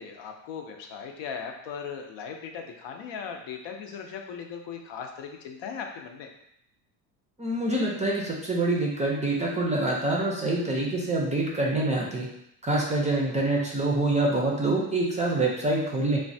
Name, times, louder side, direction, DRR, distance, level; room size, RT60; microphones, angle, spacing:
voice 1, 0.0-6.3, left 6 dB, 65° left, 3 dB, 0.6 m, -38 dB
voice 2, 7.4-12.3 12.6-16.2, right 2 dB, 15° right, -3 dB, 0.4 m, -26 dB
3.1 x 2.2 x 2.6 m, 0.77 s
cardioid pair, 100°, 46 cm